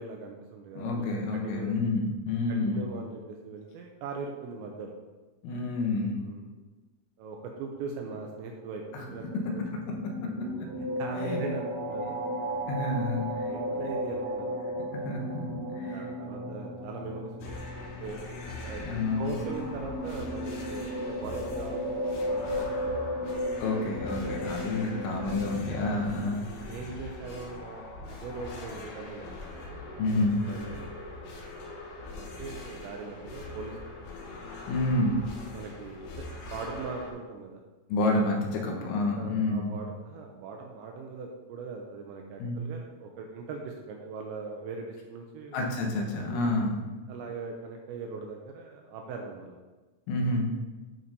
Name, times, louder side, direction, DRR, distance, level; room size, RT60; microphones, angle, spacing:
voice 1, 0.0-1.8 2.5-4.9 6.2-6.5 7.2-8.8 9.1-9.6 11.0-12.2 13.2-14.6 14.9-15.2 15.9-18.2 18.6-23.4 24.2-24.4 25.0-25.3 25.7-25.9 26.7-30.1 30.5-30.9 32.1-33.9 35.5-37.6 38.5-38.7 39.2-45.6 46.3-46.5 47.1-49.6, right 4 dB, 85° right, 1 dB, 2.7 m, -40 dB
voice 2, 0.8-2.8 5.4-6.2 8.9-9.0 10.2-10.5 11.2-11.4 12.7-13.5 15.0-16.1 16.4-16.5 18.8-19.4 23.6-26.7 30.0-30.4 34.7-35.2 37.9-39.7 42.4-42.6 45.5-46.8 50.1-50.5, left 2 dB, 85° left, 0 dB, 3.9 m, -29 dB
sound 1, 8.9-26.2, equal, 65° right, 3.1 m, -35 dB
sound 2, 17.4-37.1, left 2 dB, 65° left, 3.0 m, -42 dB
11.0 x 4.5 x 4.0 m, 1.2 s
omnidirectional pair, 5.8 m